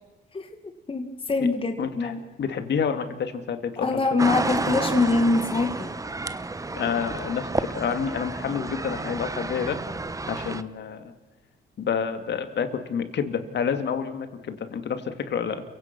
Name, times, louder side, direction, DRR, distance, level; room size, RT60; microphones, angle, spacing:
voice 1, 0.9-2.2 3.8-5.9, left 3 dB, 25° left, 6 dB, 2.0 m, -24 dB
voice 2, 1.8-2.1 2.4-4.0 6.7-9.8 10.3-11.1 11.8-15.6, left 7 dB, 60° left, 8 dB, 2.6 m, -28 dB
sound 1, 4.2-10.6, right 3 dB, 15° right, 1.1 m, -31 dB
29.5 x 17.0 x 6.1 m, 1.2 s
cardioid pair, 90°, 20 cm